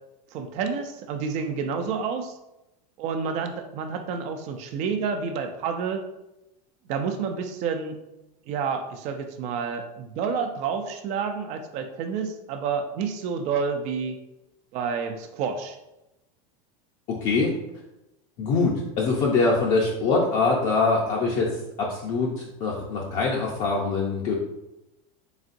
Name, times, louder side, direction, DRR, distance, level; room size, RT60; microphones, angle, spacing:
voice 1, 0.3-2.4 3.0-6.0 6.9-8.0 8.5-14.2 14.7-15.8, right 6 dB, 40° right, 6 dB, 0.4 m, -29 dB
voice 2, 18.4-24.3, left 3 dB, 40° left, -3 dB, 0.6 m, -24 dB
4.1 x 3.6 x 2.5 m, 0.92 s
supercardioid pair, 155°, 18 cm